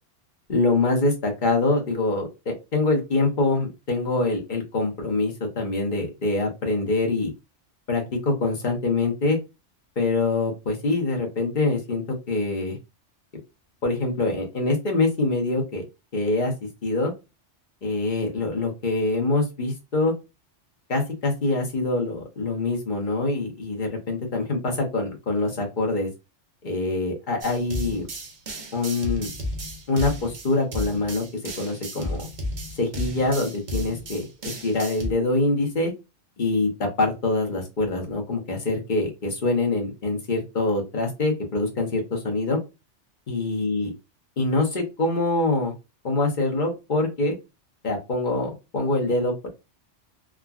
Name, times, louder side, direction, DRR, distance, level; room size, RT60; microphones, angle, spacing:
voice 1, 0.5-7.3 7.9-9.4 10.0-12.8 13.8-15.8 16.1-16.5 16.8-17.1 17.8-20.1 20.9-26.1 26.6-28.1 28.7-29.3 29.9-31.2 31.6-32.3 32.7-35.9 36.4-42.6 43.3-43.9 44.4-45.7 46.0-47.3 47.8-49.5, left 2 dB, 45° left, 1 dB, 1.0 m, -24 dB
sound 1, 27.4-35.1, equal, 45° right, 0.7 m, -33 dB
3.6 x 2.2 x 2.3 m, 0.26 s
omnidirectional pair, 1.2 m